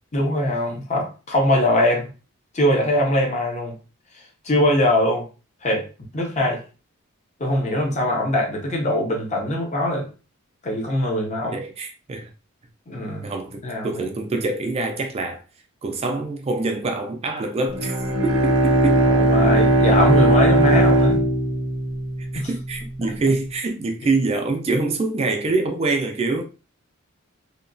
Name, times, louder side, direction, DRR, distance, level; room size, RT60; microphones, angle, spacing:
voice 1, 0.1-2.1 2.5-3.7 4.4-5.2 5.6-5.9 6.1-6.6 7.4-10.1 10.6-11.6 12.9-13.3 13.6-14.0 19.1-21.2 22.3-22.5, left 1 dB, 35° left, 0.6 m, -22 dB
voice 2, 11.5-12.3 13.2-15.4 15.8-18.0 18.2-19.1 22.3-26.4, right 3 dB, 30° right, 0.3 m, -25 dB
Bowed string instrument, 17.7-22.5, right 1 dB, 75° right, 0.6 m, -18 dB
2.9 x 2.1 x 2.5 m
head